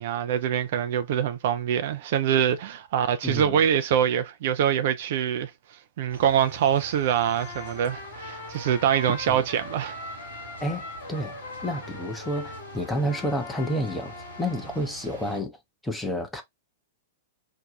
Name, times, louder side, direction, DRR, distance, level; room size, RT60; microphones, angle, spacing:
voice 1, 0.0-10.0, right 9 dB, 50° right, 0.3 m, -24 dB
voice 2, 3.2-3.6 9.3-9.4 10.6-11.3 11.6-15.6 15.8-16.4, equal, 5° left, 0.7 m, -30 dB
sound 1, 6.1-15.4, right 2 dB, 75° right, 1.1 m, -44 dB
Trumpet, 7.3-14.9, left 4 dB, 50° left, 0.6 m, -41 dB
2.7 x 2.2 x 3.9 m
figure-of-eight pair, 100°, 0 cm